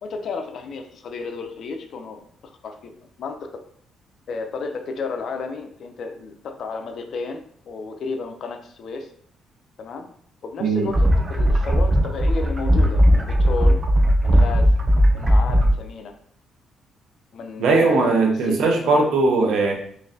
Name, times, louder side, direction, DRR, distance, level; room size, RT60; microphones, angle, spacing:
voice 1, 0.0-3.5 4.3-9.1 9.8-10.1 10.4-13.8 14.2-14.7 15.1-16.1 17.3-18.9, left 4 dB, 65° left, 5 dB, 0.6 m, -32 dB
sound 1, 10.9-15.7, equal, 30° right, 0.5 m, -17 dB
voice 2, 17.6-19.7, right 3 dB, 80° right, 2 dB, 0.8 m, -19 dB
3.9 x 3.1 x 2.8 m, 0.63 s
cardioid pair, 90°, 0 cm